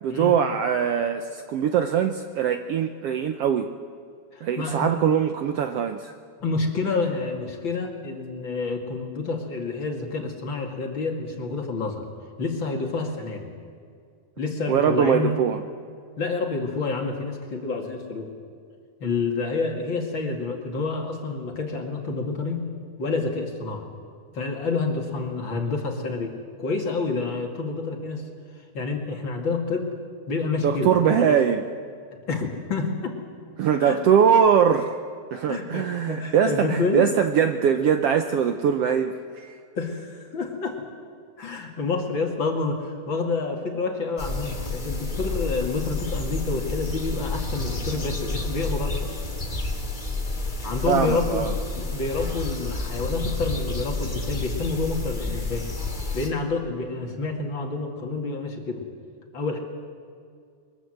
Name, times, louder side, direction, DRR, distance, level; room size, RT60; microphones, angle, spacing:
voice 1, 0.0-3.7 4.4-6.1 14.7-15.6 30.6-31.6 33.6-34.9 35.3-39.5 50.9-51.5, right 8 dB, 70° right, 7 dB, 1.6 m, -22 dB
voice 2, 4.3-5.1 6.4-12.1 12.4-13.5 14.4-15.4 16.2-18.3 19.0-22.7 23.0-23.8 24.3-26.3 26.6-28.2 28.7-30.0 30.3-31.4 32.3-33.1 33.8-34.0 35.5-37.1 39.7-40.8 41.4-49.1 50.6-51.5 51.8-55.7 56.1-58.8 59.3-59.6, left 3 dB, 40° left, 2 dB, 2.8 m, -28 dB
sound 1, 44.2-56.3, left 2 dB, 15° left, 1.9 m, -30 dB
22.5 x 22.0 x 7.9 m, 2.2 s
omnidirectional pair, 3.5 m